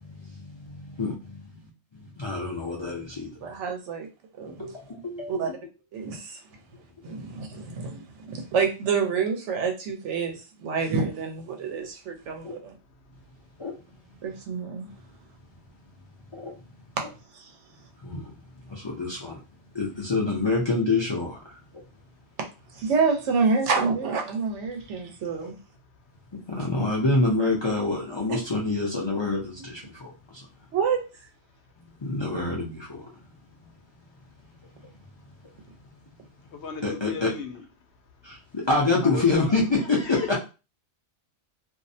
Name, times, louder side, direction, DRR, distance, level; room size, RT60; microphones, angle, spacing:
voice 1, 0.0-3.3 4.4-5.5 7.0-7.1 12.4-12.5 13.6-13.8 16.3-16.5 18.0-18.3 18.7-19.4 19.7-21.6 26.5-30.4 32.0-33.1 36.8-37.3 38.2-40.4, left 3 dB, 40° left, 0.4 m, -27 dB
voice 2, 3.4-4.1 4.4-4.7 5.3-5.5 5.9-6.4 7.0-8.0 8.3-12.7 14.2-14.9 17.3-17.5 22.7-25.5 28.3-28.4 30.7-31.0, right 5 dB, 90° right, 1.0 m, -27 dB
voice 3, 12.7-13.2 21.8-22.1 24.7-25.0 30.2-30.3 30.6-30.7 35.5-35.6 36.5-37.7 39.0-39.5 40.1-40.4, left 5 dB, 75° left, 0.8 m, -37 dB
2.5 x 2.0 x 2.6 m
omnidirectional pair, 1.2 m